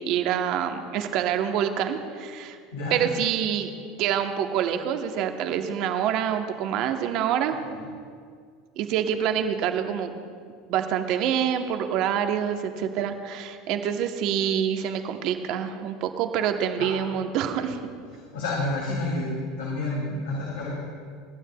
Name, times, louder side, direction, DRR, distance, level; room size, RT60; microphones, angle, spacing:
voice 1, 0.0-2.6 2.9-3.7 4.0-7.6 8.8-10.2 10.7-17.8, right 9 dB, 60° right, 6 dB, 0.9 m, -26 dB
voice 2, 2.7-3.0 7.7-7.9 16.8-16.9 18.3-20.7, left 2 dB, 85° left, -5 dB, 2.4 m, -29 dB
24.0 x 9.1 x 2.3 m, 2.1 s
hypercardioid pair, 90°, 0 cm